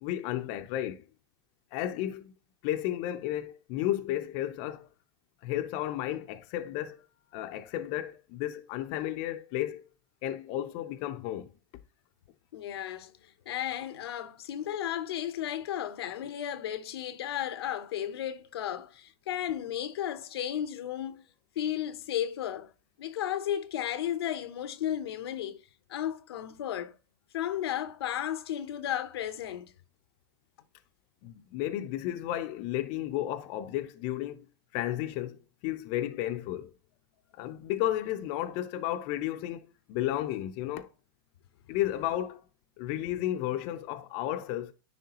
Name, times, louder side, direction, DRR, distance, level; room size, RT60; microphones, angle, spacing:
voice 1, 0.0-1.0 1.7-2.3 2.6-4.9 5.4-7.0 7.3-9.8 10.2-11.5 31.2-34.5 34.7-36.7 37.4-40.9 41.7-42.4 42.8-44.7, left 13 dB, 45° left, 0.6 m, -33 dB
voice 2, 12.5-13.1 13.5-21.2 21.6-22.7 23.0-25.6 25.9-26.9 27.3-29.7, left 11 dB, 80° left, 0.8 m, -34 dB
10.0 x 3.4 x 2.9 m
hypercardioid pair, 130°, 13 cm